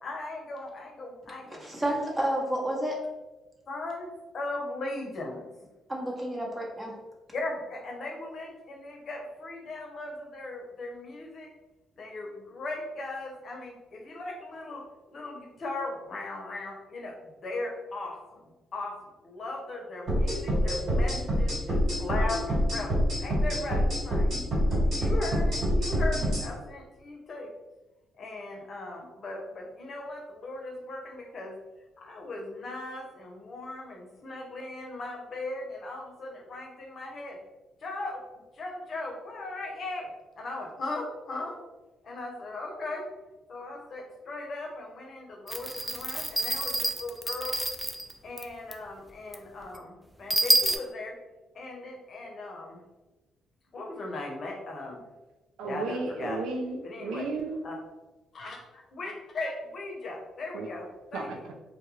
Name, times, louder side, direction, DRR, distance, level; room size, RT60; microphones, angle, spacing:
voice 1, 0.0-1.7 3.7-5.5 7.3-11.5 11.9-14.8 15.1-17.1 17.4-18.4 18.7-18.9 19.2-22.9 23.2-24.3 24.8-27.5 28.2-31.5 32.0-37.4 37.8-38.2 38.5-40.1 40.4-41.6 42.0-43.0 43.5-47.5 48.2-51.1 51.5-52.8 53.7-55.0 55.6-56.4 56.8-57.3 57.6-57.7 58.3-61.3, left 2 dB, 55° left, 0 dB, 0.6 m, -38 dB
voice 2, 1.6-3.0 5.9-6.9, right 1 dB, 20° right, -2 dB, 0.8 m, -30 dB
sound 1, 20.1-26.4, equal, 60° right, 1.3 m, -26 dB
sound 2, 45.5-48.1 48.4-48.5 48.7-48.8 49.3-49.4 49.7-49.8 50.3-50.8, equal, 5° right, 0.3 m, -27 dB
voice 3, 55.6-57.6 60.5-60.7 61.1-61.5, right 3 dB, 85° right, 2 dB, 0.3 m, -34 dB
2.2 x 2.1 x 3.0 m, 1.1 s
supercardioid pair, 60°, 0 cm